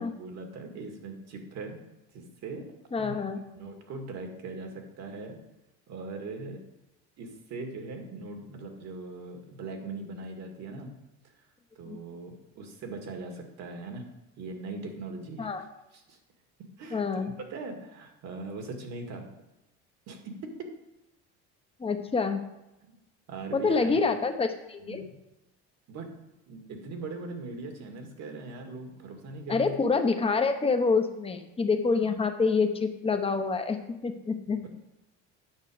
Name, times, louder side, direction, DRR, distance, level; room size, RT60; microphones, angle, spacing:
voice 1, 0.0-1.8 2.1-2.6 3.0-3.2 3.5-5.4 5.9-6.6 7.2-10.9 11.8-14.1 14.4-15.5 16.1-16.2 16.8-19.3 20.1-20.5 23.3-24.0 24.9-25.1 25.9-26.1 26.5-29.8 32.0-32.2 34.6-34.7, right 3 dB, 55° right, 4 dB, 2.0 m, -40 dB
voice 2, 2.9-3.4 11.8-12.0 15.4-15.6 16.9-17.4 21.8-22.4 23.5-25.0 29.5-34.7, left 4 dB, 20° left, 6 dB, 0.9 m, -27 dB
9.4 x 6.4 x 5.0 m, 0.96 s
cardioid pair, 115°, 32 cm